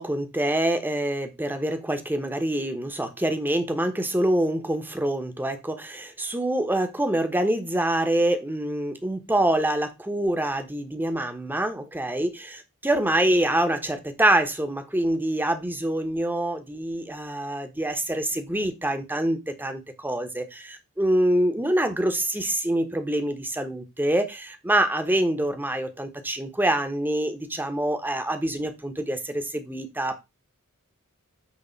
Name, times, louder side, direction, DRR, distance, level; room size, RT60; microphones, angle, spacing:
voice 1, 0.0-30.2, right 1 dB, 10° right, 7 dB, 1.2 m, -25 dB
9.1 x 3.6 x 5.3 m, 0.23 s
head